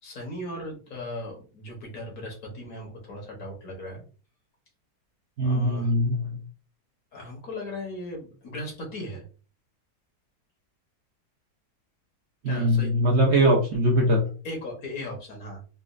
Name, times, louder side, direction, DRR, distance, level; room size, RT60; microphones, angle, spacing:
voice 1, 0.0-4.0 5.4-5.9 7.1-9.3 12.5-12.9 14.4-15.6, left 1 dB, 65° left, 0 dB, 1.5 m, -37 dB
voice 2, 5.4-6.2 12.4-14.2, equal, 55° right, -1 dB, 0.8 m, -21 dB
4.1 x 2.3 x 2.4 m, 0.37 s
omnidirectional pair, 1.7 m